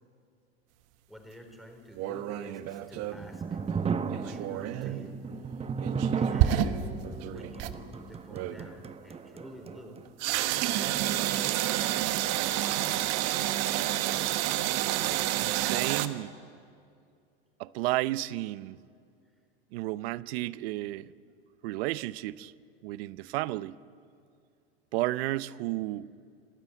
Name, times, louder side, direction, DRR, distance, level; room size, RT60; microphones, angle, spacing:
voice 1, 1.1-3.6 4.1-5.2 6.1-6.9 7.3-10.0 10.7-11.4 11.7-12.1 12.4-12.9, equal, ahead, 4.3 m, -49 dB
sound 1, 2.0-3.3 4.1-5.1 5.8-7.8 8.3-8.7 10.2-16.1, right 13 dB, 50° right, 1.2 m, -29 dB
sound 2, 2.8-10.1, right 6 dB, 20° right, 0.9 m, -34 dB
voice 2, 15.4-16.3 17.6-18.8 19.7-21.1 21.6-22.5 22.8-23.8 24.9-26.1, right 17 dB, 70° right, 0.7 m, -32 dB
25.5 x 13.0 x 9.2 m
hypercardioid pair, 100°, 32 cm